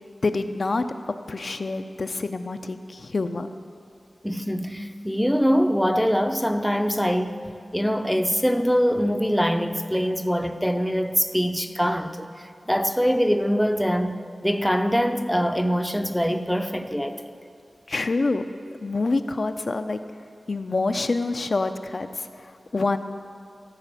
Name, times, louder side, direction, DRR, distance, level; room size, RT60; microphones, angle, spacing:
voice 1, 0.2-0.8 1.3-3.5 17.9-18.4 18.8-20.0 20.5-23.0, left 3 dB, 55° left, 0.4 m, -26 dB
voice 2, 4.2-7.4 7.7-12.3 12.7-17.2, equal, ahead, 0.5 m, -23 dB
14.0 x 4.9 x 6.7 m
wide cardioid pair, 85°, 0 cm